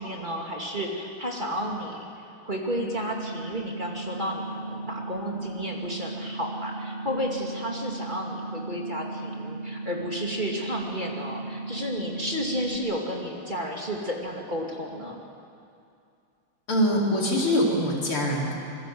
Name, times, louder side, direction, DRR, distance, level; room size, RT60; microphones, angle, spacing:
voice 1, 0.0-2.1 2.4-15.2, equal, 20° right, -1 dB, 2.7 m, -32 dB
sound 1, 2.8-12.8, right 2 dB, 25° left, 1.0 m, -36 dB
voice 2, 16.7-18.5, equal, 85° left, -3 dB, 5.2 m, -23 dB
25.0 x 22.5 x 8.0 m, 2.5 s
omnidirectional pair, 2.3 m